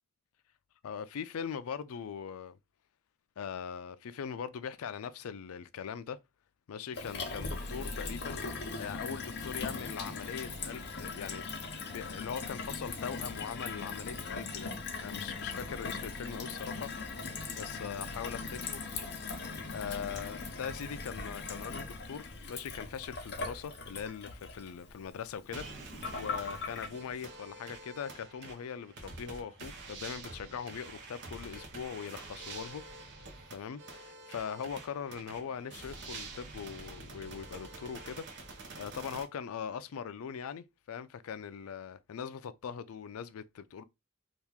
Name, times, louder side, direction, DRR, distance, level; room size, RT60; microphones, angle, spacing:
voice 1, 0.8-2.6 3.4-6.2 6.7-8.4 8.8-14.7 15.0-16.9 17.6-18.8 19.7-25.6 26.2-32.8 33.5-38.3 38.8-43.8, left 7 dB, 75° left, 0.4 m, -41 dB
Gurgling / Water tap faucet / Sink (filling or washing), 6.9-26.9, left 4 dB, 55° left, 0.7 m, -40 dB
sound 1, 25.5-39.2, right 3 dB, 55° right, 0.7 m, -47 dB
2.9 x 2.4 x 3.4 m
head